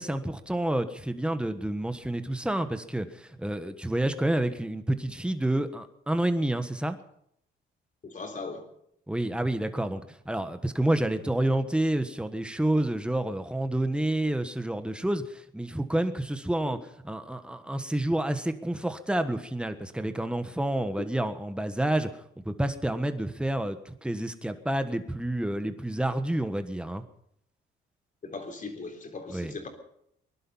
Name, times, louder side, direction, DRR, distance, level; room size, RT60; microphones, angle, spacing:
voice 1, 0.0-7.0 9.1-27.0 29.3-29.5, right 1 dB, 5° right, 9 dB, 1.4 m, -29 dB
voice 2, 8.0-8.7 16.6-16.8 21.0-21.1 28.2-29.7, left 3 dB, 40° left, 4 dB, 3.6 m, -39 dB
21.5 x 11.5 x 5.7 m, 0.72 s
cardioid pair, 90°, 20 cm